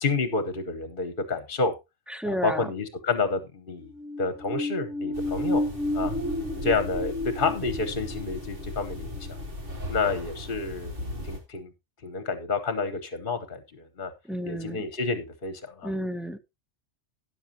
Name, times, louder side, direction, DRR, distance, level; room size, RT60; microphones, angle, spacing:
voice 1, 0.0-1.7 2.2-3.9 4.2-5.6 5.9-6.1 6.6-9.3 9.9-11.0 11.2-11.7 12.0-14.1 14.4-15.9, left 4 dB, 50° left, 11 dB, 1.2 m, -29 dB
voice 2, 2.1-2.7 14.3-14.8 15.8-16.4, equal, ahead, 9 dB, 0.4 m, -31 dB
sound 1, 3.8-10.2 10.5-10.6, left 1 dB, 85° right, 2.1 m, -32 dB
sound 2, 5.1-11.4, left 1 dB, 50° right, 3.1 m, -37 dB
12.5 x 10.0 x 2.8 m, 0.23 s
omnidirectional pair, 1.2 m